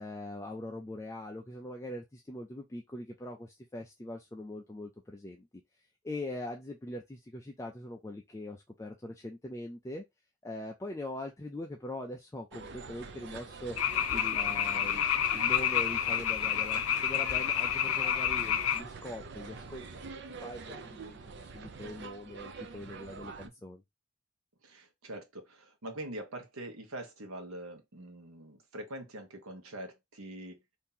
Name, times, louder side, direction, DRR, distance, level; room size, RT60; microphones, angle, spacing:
voice 1, 0.0-5.5 6.0-10.0 10.4-13.8 14.1-15.0 15.3-23.8, left 1 dB, 15° left, 0.3 m, -42 dB
sound 1, 12.5-23.5, right 4 dB, 55° right, 0.5 m, -45 dB
sound 2, 13.8-18.8, left 9 dB, 80° left, 0.4 m, -29 dB
voice 2, 24.6-30.6, right 1 dB, 85° right, 1.0 m, -44 dB
2.8 x 2.7 x 3.7 m
head